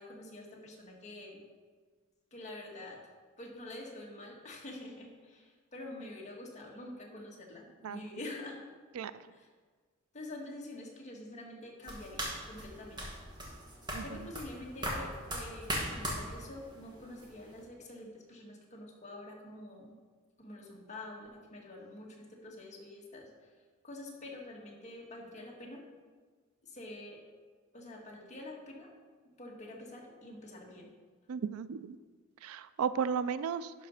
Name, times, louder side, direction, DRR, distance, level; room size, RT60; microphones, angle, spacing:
voice 1, 0.0-1.4 2.3-3.0 3.4-8.6 9.3-9.5 10.1-13.2 14.0-19.9 20.4-23.3 23.8-25.8 26.6-27.2 27.7-28.9 29.4-30.9, left 1 dB, 35° left, -2 dB, 1.6 m, -47 dB
sound 1, 11.8-17.6, equal, 20° right, 1.7 m, -40 dB
voice 2, 31.3-32.0 32.4-33.7, right 6 dB, 90° right, 14 dB, 0.4 m, -34 dB
11.5 x 4.3 x 5.6 m, 1.5 s
head